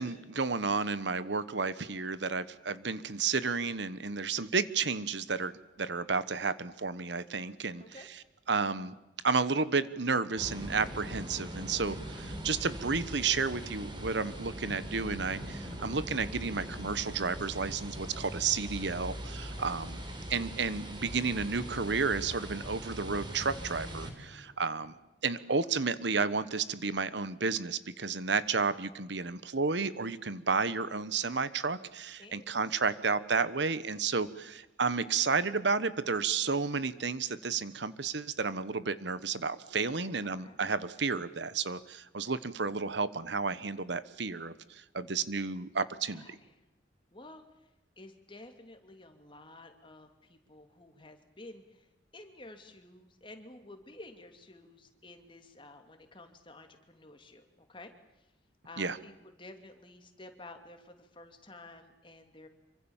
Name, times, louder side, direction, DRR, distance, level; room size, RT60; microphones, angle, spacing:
voice 1, 0.0-5.5 5.8-7.8 8.5-8.9 9.2-20.0 20.3-24.9 25.2-46.4 58.8-59.0, right 4 dB, 70° right, 15 dB, 1.2 m, -32 dB
sound 1, 10.4-24.1, equal, 25° right, 4.1 m, -41 dB
sound 2, 13.3-24.9, equal, 55° right, 5.0 m, -59 dB
voice 2, 20.2-20.5 25.3-25.8 32.2-33.0 40.0-40.6 46.1-46.5 47.1-47.7 48.0-57.9 58.2-58.3 58.6-62.5, left 2 dB, 25° left, 6 dB, 2.8 m, -52 dB
26.5 x 24.5 x 7.3 m, 0.97 s
head